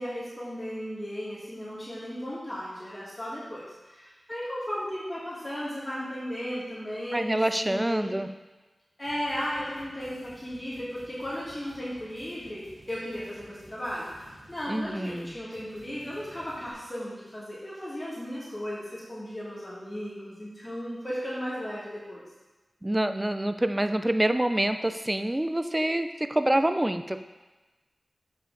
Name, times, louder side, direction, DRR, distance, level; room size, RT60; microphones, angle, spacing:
voice 1, 0.0-8.2 9.0-22.2, equal, 20° left, -8 dB, 2.3 m, -35 dB
voice 2, 7.1-8.3 14.7-15.3 22.8-27.2, right 1 dB, 15° right, 9 dB, 0.4 m, -26 dB
sound 1, 9.0-16.7, equal, 65° right, 2.3 m, -55 dB
7.8 x 5.2 x 4.0 m, 1.2 s
wide cardioid pair, 75°, 0 cm